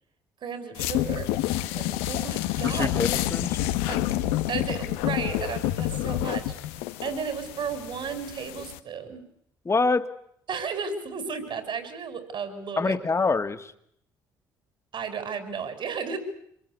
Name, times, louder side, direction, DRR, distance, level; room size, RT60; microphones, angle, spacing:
voice 1, 0.4-1.3 1.7-3.0 3.9-4.2 4.5-6.5 7.0-9.2 10.5-12.9 14.9-16.2, right 6 dB, 55° right, 10 dB, 6.1 m, -34 dB
sound 1, 0.8-8.8, left 14 dB, 75° left, 1.3 m, -28 dB
voice 2, 2.6-3.6 9.7-10.1 12.8-13.7, left 4 dB, 30° left, 9 dB, 2.2 m, -25 dB
26.5 x 22.5 x 8.5 m, 0.72 s
hypercardioid pair, 50°, 10 cm